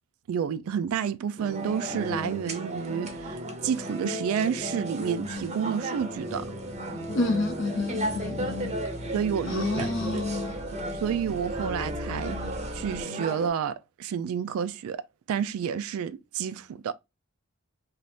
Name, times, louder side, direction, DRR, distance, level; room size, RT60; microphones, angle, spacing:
voice 1, 0.3-6.5 9.1-10.2 10.9-12.4 12.7-16.9, right 8 dB, 85° right, 0.3 m, -30 dB
sound 1, 1.4-13.5, right 1 dB, 30° right, 0.6 m, -34 dB
sound 2, 6.0-13.0, left 1 dB, 35° left, 0.9 m, -41 dB
voice 2, 7.1-8.7 9.4-10.6, left 2 dB, 60° left, 0.5 m, -29 dB
2.7 x 2.4 x 3.3 m
head